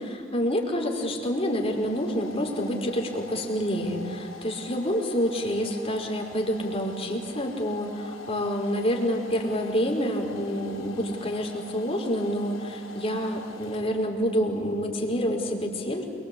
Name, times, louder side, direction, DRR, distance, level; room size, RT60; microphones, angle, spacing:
voice 1, 0.0-16.0, equal, 30° left, 1 dB, 4.9 m, -28 dB
Domestic sounds home sounds, 0.6-14.4, left 3 dB, 90° left, 4.0 m, -45 dB
28.0 x 24.5 x 8.6 m, 2.4 s
head